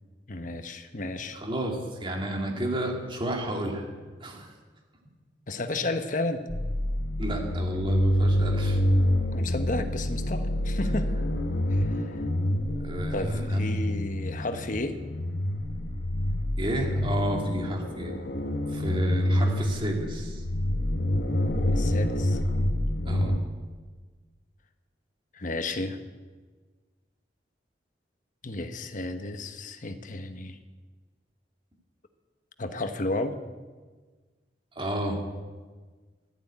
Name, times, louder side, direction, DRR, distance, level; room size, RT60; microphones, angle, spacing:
voice 1, 0.3-1.4 5.5-6.4 9.3-11.1 11.7-12.1 13.1-15.0 21.7-22.4 25.3-26.0 28.4-30.6 32.6-33.4, left 2 dB, 45° left, 8 dB, 1.1 m, -32 dB
voice 2, 1.3-3.8 4.2-4.5 7.2-8.8 12.8-13.7 16.6-18.1 18.7-20.4 23.0-23.4 34.8-35.2, right 1 dB, 30° right, 1 dB, 2.4 m, -31 dB
sound 1, 6.5-23.4, left 1 dB, 65° left, 1.1 m, -27 dB
12.0 x 11.0 x 9.3 m, 1.4 s
head